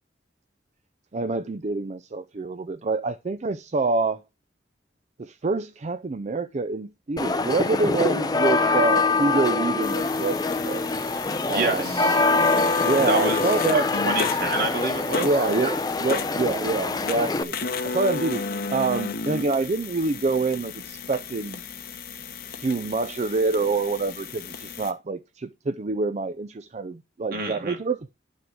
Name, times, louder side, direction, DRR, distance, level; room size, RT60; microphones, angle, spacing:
voice 1, 1.1-4.2 5.2-10.8 11.5-12.0 12.8-13.9 15.2-17.6 17.8-21.6 22.6-28.1, right 3 dB, 40° right, 0.4 m, -26 dB
sound 1, 7.2-17.4, left 3 dB, 20° left, 0.6 m, -24 dB
sound 2, 9.8-24.9, left 5 dB, 55° left, 1.1 m, -33 dB
voice 2, 11.5-12.2 13.1-13.4 13.7-15.3 27.3-27.8, right 2 dB, 55° right, 1.9 m, -28 dB
11.0 x 3.7 x 6.2 m
head